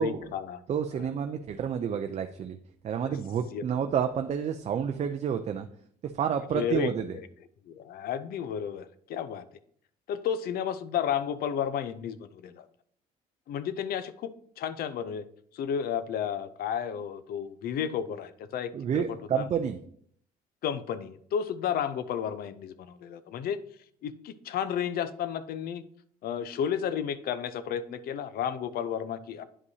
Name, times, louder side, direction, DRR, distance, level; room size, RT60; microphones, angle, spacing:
voice 1, 0.0-0.6 1.0-1.1 3.0-3.2 3.5-3.6 6.5-7.3 7.7-9.4 10.1-12.7 13.5-14.3 14.6-15.3 15.5-19.5 20.6-23.6 24.0-25.8 26.2-29.4, left 8 dB, 65° left, 14 dB, 0.6 m, -32 dB
voice 2, 0.7-2.6 2.8-5.7 6.0-7.1 18.7-19.8, right 8 dB, 40° right, 6 dB, 0.5 m, -29 dB
9.7 x 5.3 x 2.7 m, 0.63 s
cardioid pair, 110°, 17 cm